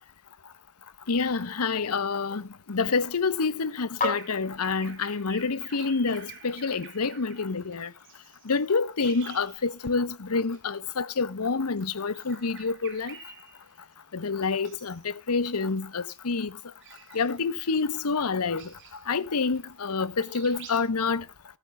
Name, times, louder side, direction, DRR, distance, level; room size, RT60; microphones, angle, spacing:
sound 1, 0.9-6.8, left 3 dB, 35° left, 7.3 m, -39 dB
voice 1, 1.1-7.9 8.4-13.2 14.1-16.5 17.1-18.7 19.1-21.2, left 4 dB, 85° left, 0.9 m, -28 dB
Bird vocalization bird call bird song, 4.0-10.1 10.4-10.6 11.7-13.9 14.4-15.1 15.4-19.9 20.2-20.8, right 6 dB, 55° right, 3.7 m, -50 dB
14.5 x 13.5 x 2.3 m
head